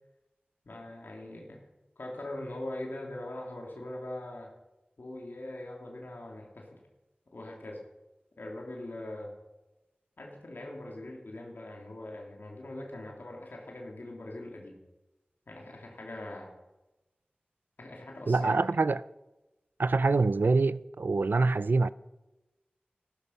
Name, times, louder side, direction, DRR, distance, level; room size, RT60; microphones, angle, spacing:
voice 1, 0.6-1.6 2.0-4.5 5.0-6.8 7.3-7.8 8.4-9.3 10.2-14.8 15.5-16.5 17.8-18.5, left 1 dB, 85° left, 2.4 m, -42 dB
voice 2, 18.3-19.0 19.8-21.9, right 3 dB, 85° right, 0.4 m, -25 dB
15.0 x 12.5 x 5.5 m
wide cardioid pair, 60°, 3 cm